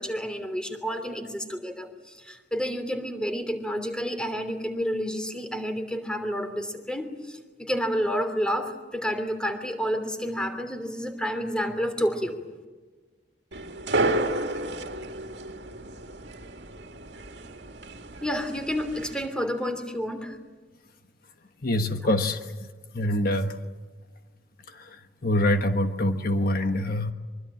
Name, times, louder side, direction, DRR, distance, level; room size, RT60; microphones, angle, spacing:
voice 1, 0.0-12.4 18.2-20.4 22.0-22.1, equal, 5° left, 7 dB, 3.0 m, -30 dB
sound 1, 13.5-19.3, right 2 dB, 80° right, 2.0 m, -31 dB
voice 2, 21.6-22.4 22.9-23.6 24.7-25.0 25.2-27.1, left 1 dB, 55° left, 7 dB, 1.4 m, -25 dB
24.5 x 24.5 x 8.8 m, 1.3 s
head